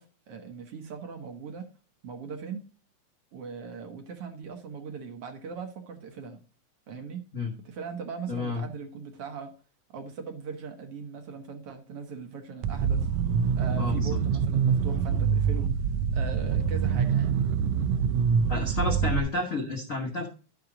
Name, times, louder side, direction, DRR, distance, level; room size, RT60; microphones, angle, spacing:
voice 1, 0.0-1.7 2.0-2.7 3.3-6.4 6.9-7.2 7.6-9.5 9.9-13.1 13.6-15.7 16.1-17.3, right 5 dB, 60° right, 5 dB, 1.8 m, -40 dB
voice 2, 8.3-8.6 13.8-14.2 18.5-20.3, left 3 dB, 75° left, 2 dB, 0.7 m, -30 dB
sound 1, 12.6-19.2, right 7 dB, 80° right, 1.5 m, -25 dB
11.5 x 6.0 x 3.8 m, 0.36 s
omnidirectional pair, 3.5 m